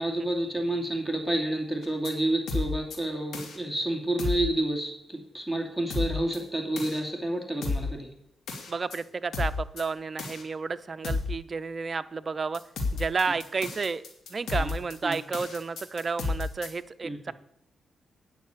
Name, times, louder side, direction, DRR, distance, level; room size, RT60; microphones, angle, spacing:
voice 1, 0.0-8.1 14.6-14.7 15.0-15.2 17.0-17.3, right 1 dB, 5° left, 2 dB, 2.6 m, -29 dB
sound 1, 1.8-2.1 2.5-3.0 3.3-3.6 4.2-4.5 5.9-6.4 6.8-7.0 7.6-7.9 8.5-9.0 9.3-9.8 10.2-10.4 11.0-11.4 12.5-16.7, left 3 dB, 75° left, 2.5 m, -31 dB
voice 2, 8.7-12.6 12.9-14.0 14.3-17.3, right 4 dB, 40° right, 13 dB, 0.6 m, -31 dB
9.2 x 6.5 x 8.6 m, 0.75 s
cardioid pair, 90°, 0 cm